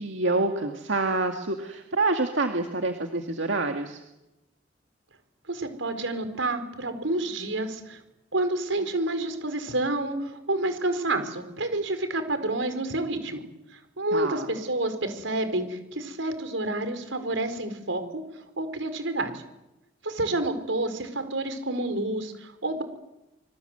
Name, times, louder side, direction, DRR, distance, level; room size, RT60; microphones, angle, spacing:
voice 1, 0.0-4.0 14.1-14.5, right 2 dB, 70° right, 5 dB, 2.2 m, -27 dB
voice 2, 5.5-8.0 8.3-13.4 14.0-18.2 18.6-19.4 20.0-22.8, right 2 dB, 90° right, 9 dB, 4.9 m, -29 dB
27.0 x 24.5 x 8.1 m, 0.91 s
head